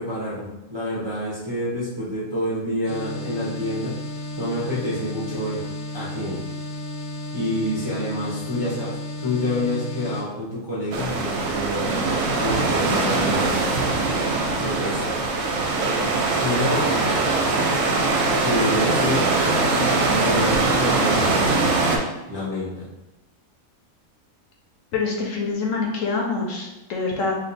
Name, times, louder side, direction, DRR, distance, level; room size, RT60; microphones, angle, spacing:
voice 1, 0.0-3.9 4.4-5.6 5.9-6.4 7.3-8.9 9.2-12.0 12.4-13.9 14.6-15.2 16.4-16.9 18.4-19.3 20.2-21.8 22.3-22.9, left 1 dB, 35° right, -9 dB, 0.4 m, -27 dB
sound 1, 2.9-10.2, left 1 dB, 85° left, 1.3 m, -33 dB
sound 2, 10.9-22.0, right 3 dB, 70° right, 0.9 m, -22 dB
voice 2, 24.9-27.3, left 4 dB, 70° left, -1 dB, 0.9 m, -25 dB
2.5 x 2.2 x 3.9 m, 1.0 s
omnidirectional pair, 1.5 m